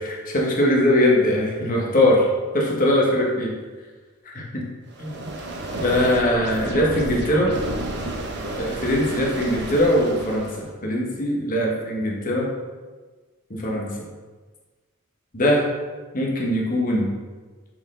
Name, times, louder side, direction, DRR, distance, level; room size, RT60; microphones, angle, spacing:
voice 1, 0.3-2.3 2.5-3.5 4.2-4.6 5.0-5.1 5.8-7.5 8.5-12.5 13.5-13.9 15.3-15.7 16.1-17.1, left 1 dB, 40° left, -2 dB, 1.2 m, -21 dB
sound 1, 4.9-10.7, right 2 dB, 55° right, 0.9 m, -31 dB
6.0 x 4.4 x 3.8 m, 1.4 s
head